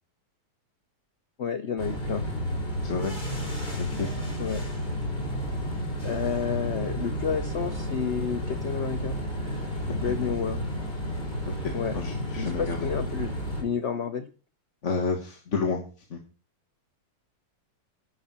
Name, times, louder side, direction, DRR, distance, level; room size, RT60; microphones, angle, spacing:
voice 1, 1.4-2.2 4.4-4.6 6.0-9.2 9.9-10.6 11.7-12.0 12.3-14.3, left 7 dB, 85° left, 9 dB, 0.6 m, -30 dB
sound 1, 1.8-13.6, equal, 20° left, 3.8 m, -31 dB
voice 2, 3.8-4.1 10.1-10.3 11.4-12.8 14.8-15.8 16.1-16.2, left 4 dB, 40° left, 1 dB, 1.6 m, -30 dB
11.5 x 5.3 x 8.5 m, 0.37 s
omnidirectional pair, 2.2 m